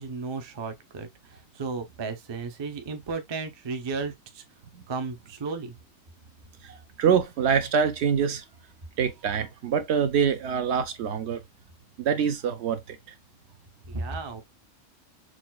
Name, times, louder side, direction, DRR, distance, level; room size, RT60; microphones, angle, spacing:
voice 1, 0.0-4.4 4.9-5.7 13.9-14.4, right 4 dB, 35° right, 0.4 m, -34 dB
voice 2, 6.6-8.4 9.0-11.4 12.0-13.1, right 7 dB, 70° right, 0.8 m, -25 dB
6.1 x 2.3 x 2.2 m
omnidirectional pair, 1.3 m